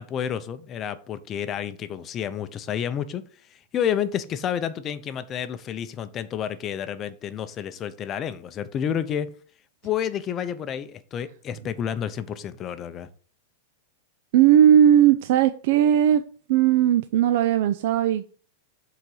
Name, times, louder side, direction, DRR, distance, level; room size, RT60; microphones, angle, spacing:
voice 1, 0.0-3.2 3.5-9.3 9.8-13.1, left 9 dB, 25° left, 0.6 m, -30 dB
voice 2, 14.3-16.2 16.5-18.3, right 10 dB, 55° right, 0.4 m, -18 dB
7.3 x 4.0 x 4.8 m
supercardioid pair, 150°, 0 cm